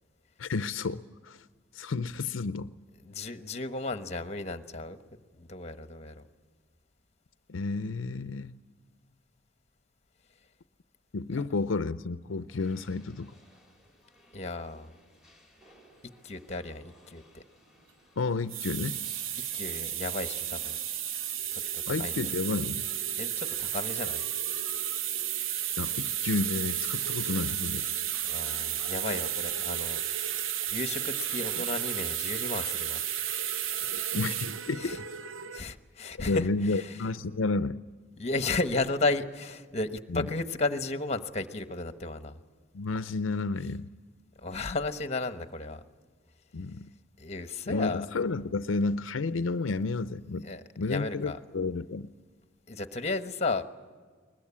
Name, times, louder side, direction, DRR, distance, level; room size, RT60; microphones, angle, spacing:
voice 1, 0.4-1.4 1.7-2.7 7.5-8.5 11.1-13.4 18.2-19.0 21.9-22.9 25.8-27.9 34.1-35.0 36.2-37.8 40.1-40.3 42.7-43.9 46.5-46.9 47.7-50.5 50.8-52.1, left 3 dB, 75° left, 13 dB, 0.6 m, -31 dB
voice 2, 3.0-5.0 5.3-6.2 14.3-14.9 16.2-17.4 19.5-20.8 21.5-22.2 23.2-24.2 28.2-30.4 30.7-33.0 34.8-35.0 35.5-36.9 38.2-42.4 44.4-45.8 47.2-48.1 50.4-51.4 52.7-53.6, left 3 dB, 35° left, 9 dB, 1.2 m, -34 dB
sound 1, 12.5-21.3, left 1 dB, ahead, 4.1 m, -60 dB
sound 2, 18.4-35.6, right 10 dB, 85° right, 0.7 m, -33 dB
21.5 x 21.0 x 8.6 m, 1.5 s
head